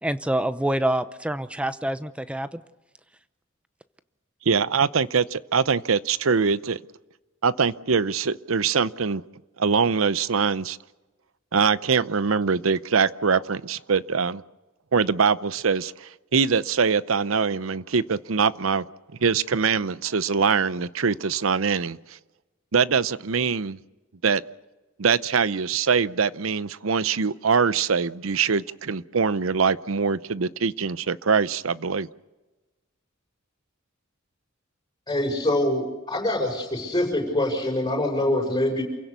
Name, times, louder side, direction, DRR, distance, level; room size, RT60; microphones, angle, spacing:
voice 1, 0.0-2.6, right 1 dB, 5° right, 12 dB, 0.7 m, -26 dB
voice 2, 4.5-6.8 7.4-9.2 9.6-10.8 11.5-14.4 14.9-18.8 19.2-22.0 22.7-23.8 24.2-24.4 25.0-32.1, right 5 dB, 90° right, 17 dB, 0.7 m, -23 dB
voice 3, 35.1-38.8, left 1 dB, 20° left, 1 dB, 6.5 m, -24 dB
28.5 x 16.5 x 6.9 m, 1.1 s
head